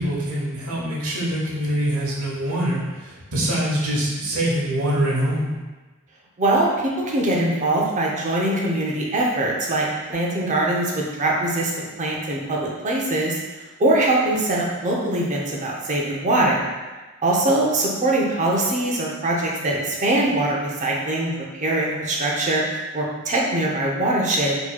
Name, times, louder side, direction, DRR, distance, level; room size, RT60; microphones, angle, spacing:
voice 1, 0.0-5.5, right 1 dB, 85° right, -4 dB, 1.0 m, -24 dB
voice 2, 7.1-11.7 12.0-13.4 13.8-16.7 17.2-24.5, right 2 dB, 35° right, -3 dB, 0.6 m, -22 dB
4.3 x 2.9 x 2.2 m, 1.2 s
head